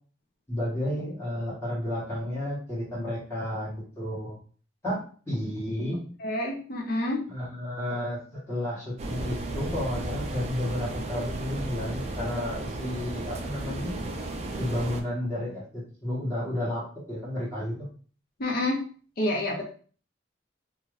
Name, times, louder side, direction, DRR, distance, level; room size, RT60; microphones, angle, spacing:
voice 1, 0.5-4.4 4.8-6.0 7.3-13.9 14.6-17.7, left 1 dB, 15° left, -8 dB, 1.2 m, -32 dB
voice 2, 6.2-7.2 18.4-18.8 19.2-19.7, left 1 dB, 50° left, -1 dB, 0.6 m, -28 dB
sound 1, 9.0-15.0, right 2 dB, 35° right, 0.4 m, -34 dB
2.6 x 2.4 x 3.1 m, 0.41 s
head